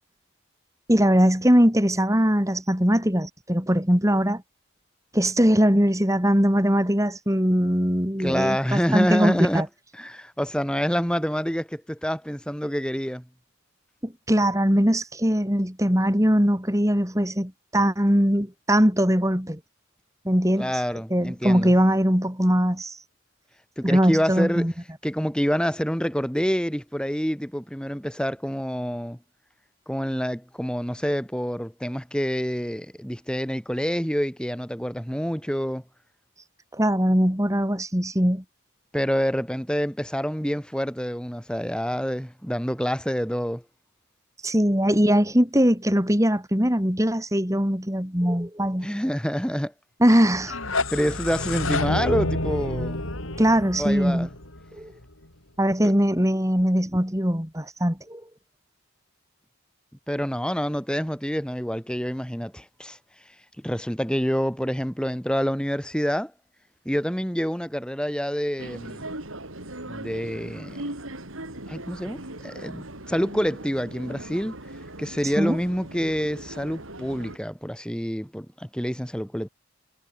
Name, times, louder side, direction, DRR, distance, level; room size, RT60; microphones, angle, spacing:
voice 1, 0.9-4.4 5.1-9.7 14.0-19.6 20.2-20.7 21.1-23.0 23.8-24.7 36.7-38.4 44.4-48.9 50.0-50.5 53.4-54.3 54.8-54.9 55.6-58.2 75.4-75.6, equal, 15° right, 4.6 m, -21 dB
voice 2, 8.2-9.7 9.9-13.2 20.5-21.7 23.8-24.7 25.0-29.2 29.9-35.8 38.9-43.6 48.8-49.7 50.9-53.0 53.8-54.3 60.1-63.0 63.6-66.3 66.9-69.1 69.9-70.8 71.7-74.5 75.0-79.5, equal, 5° left, 4.1 m, -27 dB
sound 1, 50.3-55.2, left 2 dB, 75° left, 6.1 m, -28 dB
sound 2, 68.6-77.4, right 1 dB, 75° right, 5.9 m, -39 dB
head